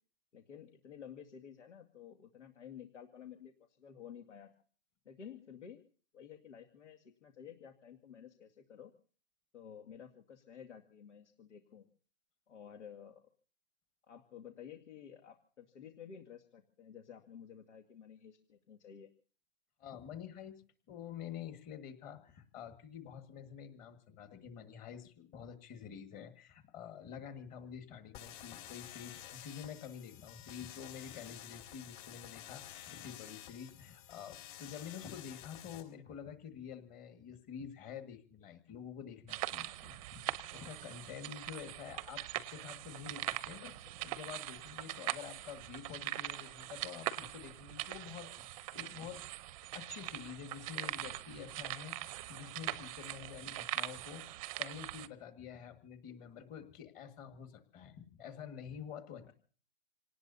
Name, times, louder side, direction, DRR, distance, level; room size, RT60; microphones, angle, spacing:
voice 1, 0.3-4.5 5.1-5.8 6.1-8.9 9.5-11.9 12.5-13.2 14.1-19.1 59.2-59.3, left 8 dB, 80° left, 3 dB, 2.2 m, -52 dB
voice 2, 19.8-40.2 40.5-49.2 49.7-59.3, left 8 dB, 25° left, 7 dB, 1.8 m, -48 dB
sound 1, 28.1-35.8, left 12 dB, 45° left, 4.5 m, -51 dB
sound 2, 39.3-55.1, right 16 dB, 30° right, 0.7 m, -42 dB
27.5 x 18.5 x 2.7 m, 0.41 s
hypercardioid pair, 145°, 35 cm